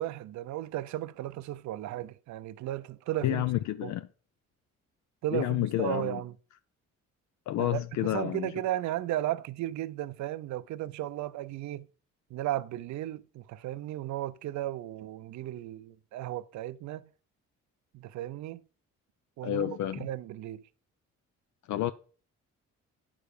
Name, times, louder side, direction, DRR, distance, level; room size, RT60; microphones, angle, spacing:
voice 1, 0.0-3.4 3.8-3.9 5.2-6.3 7.6-11.9 12.3-17.1 17.9-18.6 19.4-20.6, right 14 dB, 70° right, 0.5 m, -35 dB
voice 2, 3.2-4.1 5.3-6.2 7.5-8.5 19.4-20.1 21.7-21.9, left 13 dB, 70° left, 0.5 m, -30 dB
10.0 x 4.8 x 5.1 m
cardioid pair, 90°, 30 cm